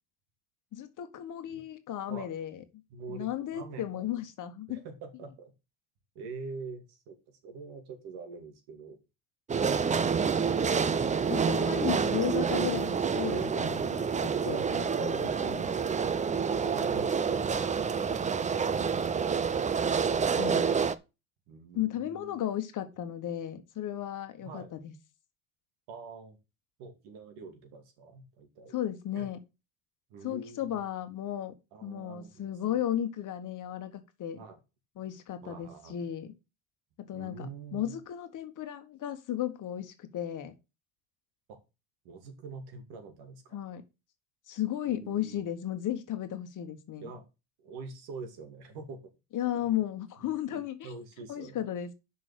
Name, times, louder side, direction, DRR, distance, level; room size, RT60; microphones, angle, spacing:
voice 1, 0.7-2.6 3.1-4.8 11.3-15.7 20.3-20.7 21.7-24.9 28.7-29.4 30.2-31.5 31.8-34.4 35.0-36.3 37.0-37.5 37.7-40.5 43.5-43.8 44.5-47.1 49.3-50.9 51.3-51.9, left 11 dB, 45° left, 9 dB, 1.4 m, -35 dB
voice 2, 2.9-4.1 4.7-5.5 6.1-9.0 14.9-15.1 21.5-22.4 24.4-24.7 25.9-26.4 26.8-28.8 29.1-29.3 30.1-30.8 31.7-32.9 34.3-34.6 35.4-36.0 37.1-38.0 41.5-41.6 42.0-43.6 44.9-45.4 47.0-47.3 47.6-49.0 49.5-49.7 50.2-51.6, right 4 dB, 65° right, 7 dB, 2.7 m, -45 dB
sound 1, 9.5-21.0, right 6 dB, 15° right, 0.6 m, -28 dB
6.2 x 5.4 x 6.8 m, 0.27 s
hypercardioid pair, 85°, 42 cm